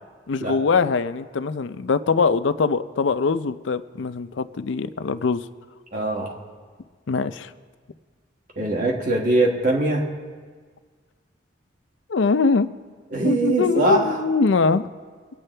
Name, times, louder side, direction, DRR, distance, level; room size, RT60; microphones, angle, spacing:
voice 1, 0.3-5.5 7.1-7.5 12.1-12.7 13.2-14.9, left 4 dB, 75° left, 12 dB, 0.5 m, -22 dB
voice 2, 5.9-6.4 8.6-10.1 13.1-14.2, right 2 dB, 45° right, 0 dB, 1.9 m, -22 dB
23.5 x 9.1 x 3.3 m, 1.5 s
head